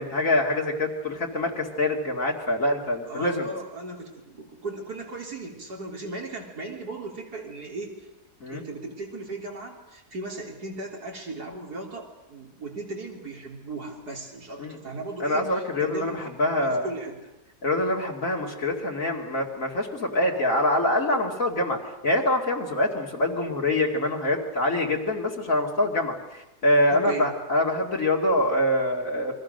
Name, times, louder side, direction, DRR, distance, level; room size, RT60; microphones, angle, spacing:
voice 1, 0.0-3.5 8.4-8.6 14.6-14.7 15.2-16.9 17.6-21.8 22.0-29.3, left 1 dB, 55° left, -1 dB, 2.8 m, -25 dB
voice 2, 3.1-7.9 8.5-16.2 16.5-17.3 26.9-27.3, right 2 dB, 80° right, -1 dB, 4.2 m, -37 dB
29.0 x 23.0 x 6.5 m, 0.96 s
omnidirectional pair, 1.7 m